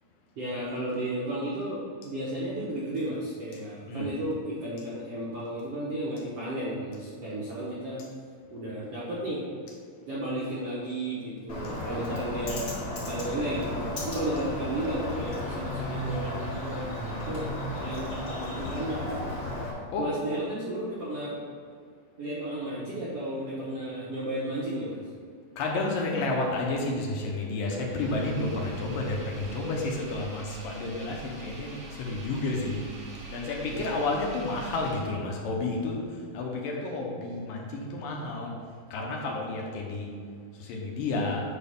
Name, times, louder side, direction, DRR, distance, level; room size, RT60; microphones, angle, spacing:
voice 1, 0.4-8.0 8.5-9.4 10.1-12.7 13.1-19.5 20.0-21.4 22.2-25.0 33.6-34.0, right 1 dB, 70° right, -6 dB, 1.4 m, -33 dB
Bird, 11.5-19.7, left 1 dB, 35° left, 2.2 m, -34 dB
voice 2, 25.6-32.8 33.3-36.0 36.3-38.5 38.9-40.1 40.6-41.4, left 2 dB, 75° left, -1 dB, 2.6 m, -31 dB
Engine, 27.7-35.4, right 3 dB, 50° right, 1.4 m, -44 dB
8.1 x 4.5 x 5.4 m, 2.1 s
omnidirectional pair, 4.2 m